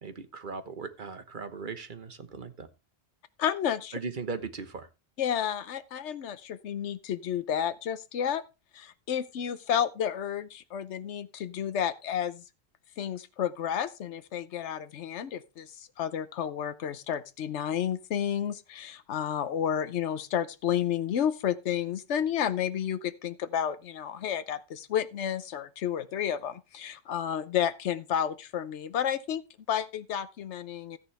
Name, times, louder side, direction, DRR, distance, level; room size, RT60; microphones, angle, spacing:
voice 1, 0.0-2.7 3.9-4.9, right 4 dB, 50° right, 1.3 m, -38 dB
voice 2, 3.4-3.9 5.2-8.4 8.7-12.4 13.0-31.0, left 9 dB, 85° left, 1.1 m, -31 dB
13.5 x 9.9 x 3.3 m
omnidirectional pair, 1.1 m